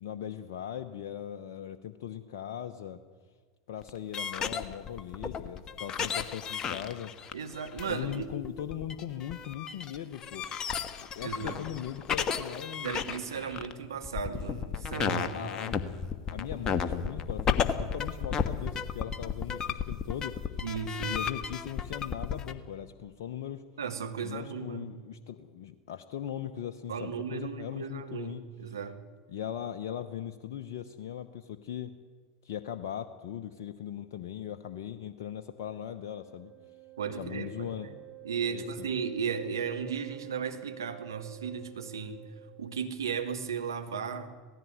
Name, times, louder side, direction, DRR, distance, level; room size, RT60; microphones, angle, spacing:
voice 1, 0.0-3.0 3.7-7.1 7.9-10.5 11.0-13.0 15.1-15.8 16.3-20.4 21.1-23.6 24.2-28.4 29.3-31.9 32.4-36.5 37.2-37.9 38.5-38.9, left 10 dB, 70° left, 7 dB, 1.0 m, -39 dB
sound 1, 3.8-22.5, left 7 dB, 35° left, 1.5 m, -33 dB
voice 2, 7.3-8.3 11.2-11.6 12.7-15.9 20.6-21.2 23.8-24.9 26.9-29.0 37.0-38.0 38.2-42.2 42.6-44.3, right 6 dB, 85° right, 7 dB, 1.7 m, -35 dB
Wind instrument woodwind instrument, 35.8-42.8, right 16 dB, 15° left, 4.1 m, -50 dB
18.0 x 15.0 x 9.5 m, 1.5 s
hypercardioid pair, 85°, 2 cm